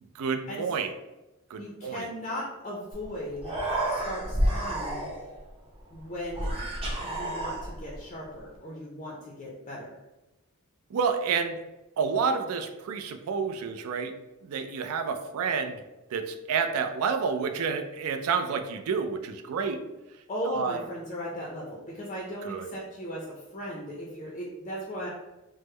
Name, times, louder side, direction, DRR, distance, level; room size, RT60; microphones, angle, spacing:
voice 1, 0.1-0.9 1.5-2.1 10.9-11.6 12.0-14.1 14.4-15.8 16.1-19.8 20.5-20.8 22.4-22.7, right 5 dB, 70° right, 7 dB, 0.3 m, -29 dB
voice 2, 1.6-3.5 3.9-5.1 5.9-6.5 7.0-9.9 20.3-25.1, equal, 30° left, -4 dB, 0.5 m, -37 dB
Human voice, 2.9-3.0 3.3-5.4 6.3-8.0, right 1 dB, 25° right, 0.7 m, -30 dB
3.4 x 2.0 x 3.2 m, 1.0 s
head